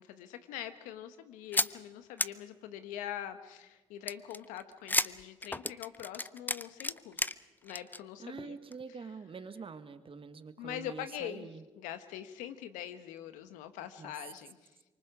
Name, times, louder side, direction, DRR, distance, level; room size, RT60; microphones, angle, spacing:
voice 1, 0.0-7.2 7.6-8.6 10.6-11.5 11.8-14.7, left 11 dB, 85° left, 11 dB, 1.1 m, -43 dB
sound 1, 1.5-1.7 2.2-2.3 4.1-7.3 7.7-8.0 8.4-8.5 8.7-8.8, left 2 dB, 15° left, 0.6 m, -32 dB
voice 2, 8.2-11.6 14.0-14.1, right 5 dB, 45° right, 11 dB, 1.5 m, -45 dB
25.5 x 24.0 x 5.0 m, 1.1 s
hypercardioid pair, 50°, 13 cm